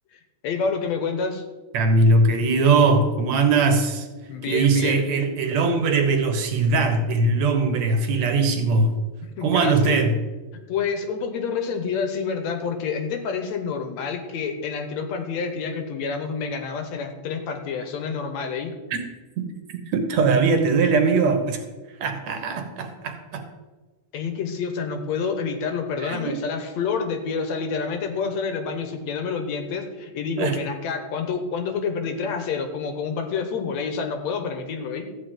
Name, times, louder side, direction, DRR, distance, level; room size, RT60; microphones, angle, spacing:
voice 1, 0.1-1.4 4.3-5.1 9.4-10.0 10.7-18.8 24.1-35.1, left 5 dB, 70° left, 6 dB, 2.3 m, -28 dB
voice 2, 1.7-4.1 4.5-8.9 9.4-10.1 19.4-19.5 19.9-21.6 22.0-23.4 26.0-26.4 30.4-30.6, right 3 dB, 65° right, 5 dB, 2.4 m, -20 dB
14.0 x 5.1 x 9.1 m, 1.3 s
omnidirectional pair, 3.4 m